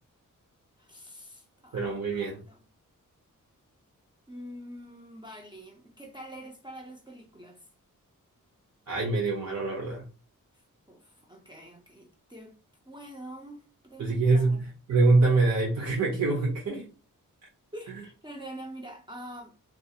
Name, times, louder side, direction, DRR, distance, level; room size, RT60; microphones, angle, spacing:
voice 1, 0.8-2.6 4.3-7.6 10.9-12.6 12.9-14.6 17.7-19.5, right 1 dB, 15° right, 0.4 m, -45 dB
voice 2, 1.7-2.4 8.9-10.1 14.0-16.9, right 3 dB, 55° right, 0.7 m, -25 dB
2.4 x 2.3 x 2.7 m
wide cardioid pair, 95°, 33 cm